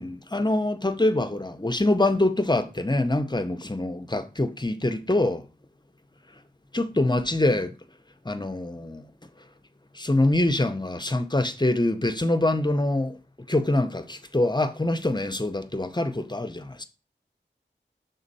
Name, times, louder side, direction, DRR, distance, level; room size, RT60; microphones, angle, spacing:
voice 1, 0.0-5.5 6.7-7.7 8.2-9.1 9.9-13.2 13.5-16.8, left 2 dB, 20° left, 0.6 m, -25 dB
6.3 x 3.8 x 4.1 m
wide cardioid pair, 45°, 19 cm